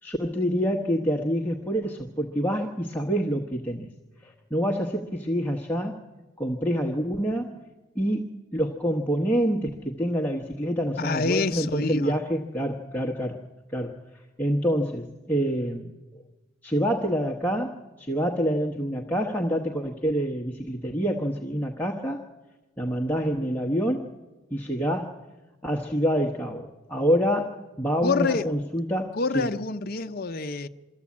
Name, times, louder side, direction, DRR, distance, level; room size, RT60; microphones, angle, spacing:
voice 1, 0.0-3.9 4.2-6.0 6.4-7.6 7.9-13.4 13.7-15.9 16.6-22.2 22.8-24.1 24.5-25.2 25.6-27.5 27.8-29.5, equal, 10° left, 1.0 m, -27 dB
voice 2, 11.0-12.2 28.0-28.5 29.2-30.7, left 4 dB, 45° left, 0.7 m, -27 dB
24.0 x 14.0 x 8.5 m
head